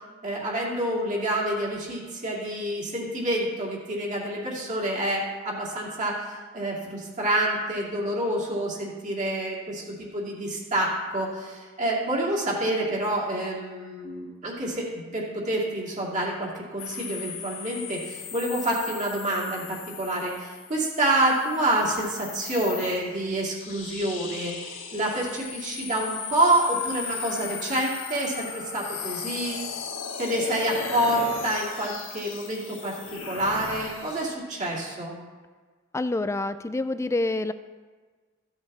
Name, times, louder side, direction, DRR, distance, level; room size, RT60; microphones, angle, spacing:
voice 1, 0.2-29.6 30.2-33.0 33.3-35.1, right 1 dB, 35° right, -4 dB, 2.5 m, -28 dB
sound 1, 16.8-34.3, left 6 dB, 65° left, 1.4 m, -37 dB
voice 2, 35.9-37.5, left 2 dB, 15° left, 12 dB, 0.3 m, -27 dB
15.0 x 8.1 x 3.3 m, 1.4 s
head